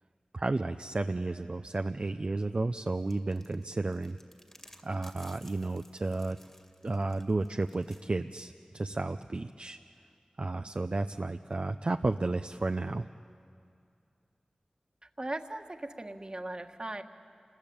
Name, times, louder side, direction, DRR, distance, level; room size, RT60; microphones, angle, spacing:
voice 1, 0.3-4.2 4.8-6.4 6.8-9.8 10.4-13.1, right 2 dB, 50° right, 7 dB, 0.6 m, -32 dB
sound 1, 3.1-8.1, left 1 dB, 15° left, 2.4 m, -57 dB
voice 2, 15.0-17.0, right 1 dB, 35° right, 6 dB, 1.6 m, -38 dB
28.0 x 20.5 x 8.8 m, 2.5 s
wide cardioid pair, 45°, 2 cm